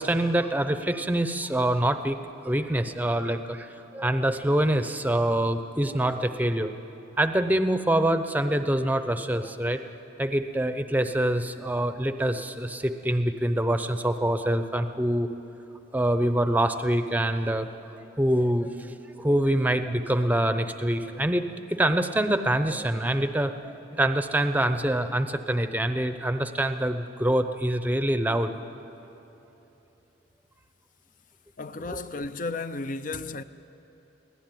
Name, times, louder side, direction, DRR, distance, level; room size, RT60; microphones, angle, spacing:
voice 1, 0.0-2.2 2.4-6.7 7.2-9.8 10.2-15.3 15.9-17.7 17.9-28.5, right 1 dB, 10° right, 0.7 m, -25 dB
voice 2, 31.6-33.4, left 3 dB, 45° left, 0.6 m, -33 dB
24.0 x 17.0 x 9.1 m
head